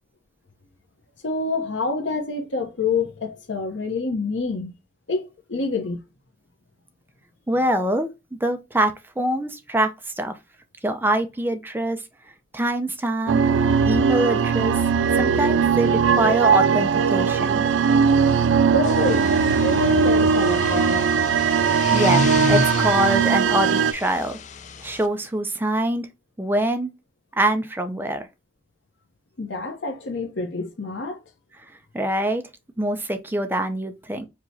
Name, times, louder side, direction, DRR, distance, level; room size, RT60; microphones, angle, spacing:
voice 1, 1.2-4.7 5.1-6.0 18.7-19.3 19.6-21.1 29.4-31.2, left 3 dB, 90° left, 1.0 m, -27 dB
voice 2, 7.5-8.1 8.4-9.9 10.2-10.3 10.8-12.0 12.5-13.4 13.9-14.8 15.1-17.6 21.9-22.2 22.5-24.4 24.8-26.1 26.4-26.9 27.4-28.3 31.9-32.4 32.8-34.2, right 1 dB, 10° right, 0.6 m, -24 dB
sound 1, 13.3-23.9, right 6 dB, 85° right, 0.3 m, -19 dB
sound 2, 18.8-25.0, left 4 dB, 40° left, 0.4 m, -30 dB
4.9 x 2.9 x 2.7 m
head